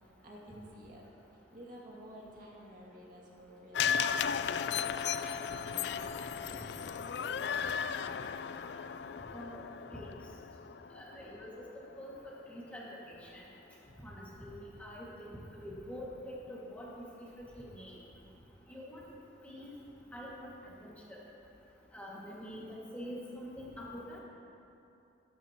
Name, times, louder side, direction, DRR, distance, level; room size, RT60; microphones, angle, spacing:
voice 1, 0.2-1.0 1.5-6.7 7.1-7.9, equal, 45° right, -4 dB, 2.5 m, -53 dB
sound 1, 3.7-12.0 12.4-12.5, left 7 dB, 60° left, 0.4 m, -35 dB
voice 2, 10.9-11.5 12.0-12.1 12.5-13.4 14.0-16.9 17.6-18.0 18.7-19.0 19.4-19.7 20.1-20.5 20.8-21.2 21.9-22.6 22.9-24.2, equal, 10° left, -6 dB, 2.2 m, -45 dB
22.0 x 12.5 x 3.1 m, 2.7 s
head